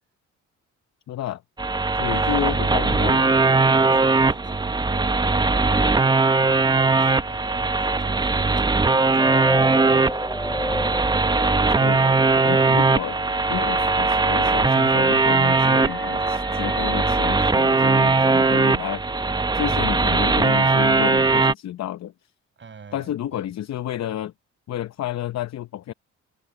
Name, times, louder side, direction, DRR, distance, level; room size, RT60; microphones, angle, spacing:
voice 1, 1.1-1.4 1.9-3.3 11.8-12.1 12.4-13.2 13.5-19.0 19.5-22.1 22.9-24.3 24.7-25.9, left 12 dB, 60° left, 0.8 m, -30 dB
sound 1, 1.6-21.5, right 3 dB, 15° right, 0.6 m, -20 dB
voice 2, 1.9-3.1 3.6-5.3 5.8-6.2 6.7-8.6 9.0-10.3 12.3-12.9 22.6-23.5, right 6 dB, 40° right, 6.4 m, -44 dB
sound 2, 9.2-18.1, left 1 dB, 5° left, 2.5 m, -35 dB
cardioid pair, 90°, 30 cm